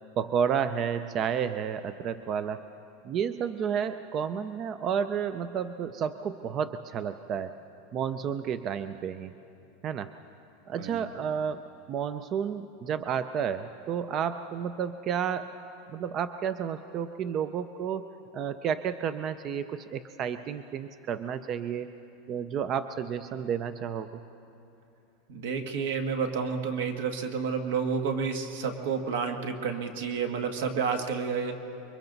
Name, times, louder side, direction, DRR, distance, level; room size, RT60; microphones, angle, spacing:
voice 1, 0.2-2.6 3.0-7.5 7.9-9.3 9.8-10.1 10.7-11.6 11.9-15.5 15.9-18.1 18.3-21.9 22.3-24.1, right 7 dB, 25° right, 11 dB, 0.4 m, -31 dB
voice 2, 25.3-31.5, right 6 dB, 70° right, 5 dB, 1.7 m, -30 dB
29.0 x 23.0 x 4.0 m, 2.9 s
supercardioid pair, 180°, 0 cm